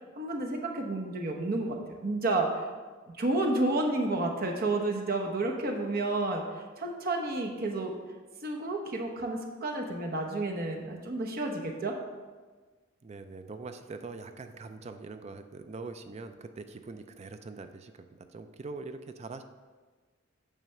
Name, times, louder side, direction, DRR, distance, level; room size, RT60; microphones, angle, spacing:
voice 1, 0.2-2.7 3.2-6.4 6.8-7.9 8.4-12.0, right 2 dB, 50° right, 1 dB, 0.9 m, -30 dB
voice 2, 13.0-19.4, right 3 dB, 35° right, 9 dB, 0.4 m, -43 dB
9.0 x 3.3 x 6.5 m, 1.4 s
head